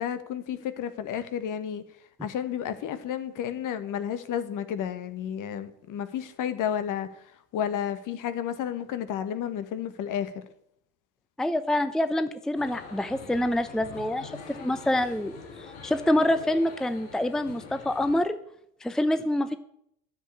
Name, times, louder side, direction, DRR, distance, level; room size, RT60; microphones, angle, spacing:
voice 1, 0.0-1.8 2.2-7.1 7.5-10.4, left 9 dB, 50° left, 12 dB, 1.5 m, -31 dB
voice 2, 11.4-18.4 18.8-19.6, left 1 dB, ahead, 12 dB, 0.7 m, -26 dB
sound 1, 12.6-18.2, left 5 dB, 80° left, 3.4 m, -44 dB
10.0 x 7.6 x 8.5 m, 0.72 s
hypercardioid pair, 80°, 39 cm